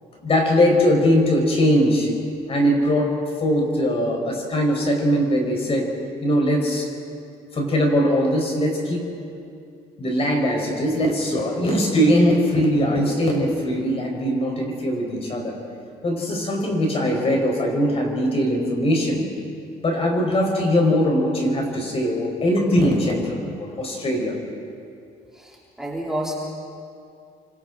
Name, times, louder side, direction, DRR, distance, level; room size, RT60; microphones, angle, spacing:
voice 1, 0.2-2.1 2.5-5.9 6.2-6.9 7.5-9.1 10.0-15.6 16.0-19.2 19.8-24.4, equal, 35° left, 1 dB, 5.3 m, -21 dB
voice 2, 25.8-26.3, right 1 dB, 5° right, -5 dB, 3.6 m, -28 dB
30.0 x 25.0 x 4.1 m, 2.4 s
cardioid pair, 110°, 17 cm